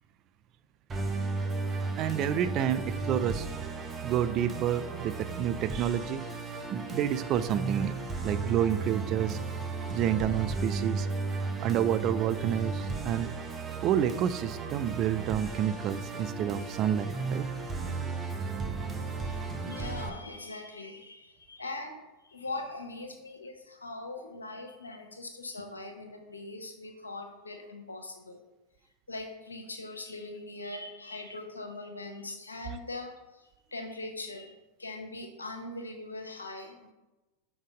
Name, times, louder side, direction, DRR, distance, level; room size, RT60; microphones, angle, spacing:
Musical instrument, 0.9-20.1, right 3 dB, 25° right, 0.8 m, -35 dB
voice 1, 2.0-3.5 4.0-6.2 6.7-8.0 8.2-9.4 9.9-11.1 11.6-13.3 13.8-17.4, right 10 dB, 45° right, 13 dB, 0.4 m, -29 dB
voice 2, 19.3-28.4 29.1-36.9, left 2 dB, 90° left, 4 dB, 0.8 m, -41 dB
5.1 x 4.0 x 5.0 m, 1.1 s
hypercardioid pair, 90°, 0 cm